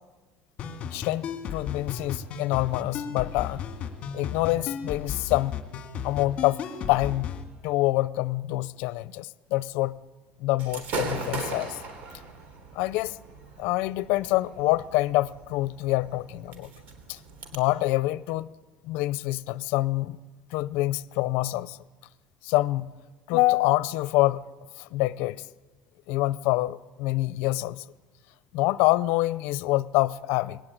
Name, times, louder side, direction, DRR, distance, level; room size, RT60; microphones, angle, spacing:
sound 1, 0.6-7.4, left 7 dB, 40° left, 2.1 m, -35 dB
voice 1, 0.9-3.6 4.1-5.5 6.0-6.6 6.9-7.3 7.6-10.0 10.4-11.8 12.8-13.2 13.6-16.7 17.1-17.2 17.5-18.5 18.8-20.2 20.5-21.8 22.4-22.9 23.3-24.5 24.8-25.4 26.1-27.8 28.5-30.6, left 18 dB, 80° left, 18 dB, 0.6 m, -26 dB
Gunshot gunfire / Fireworks, 10.6-17.6, right 3 dB, 55° right, 3.6 m, -39 dB
21.0 x 18.0 x 8.6 m, 1.3 s
cardioid pair, 160°, 3 cm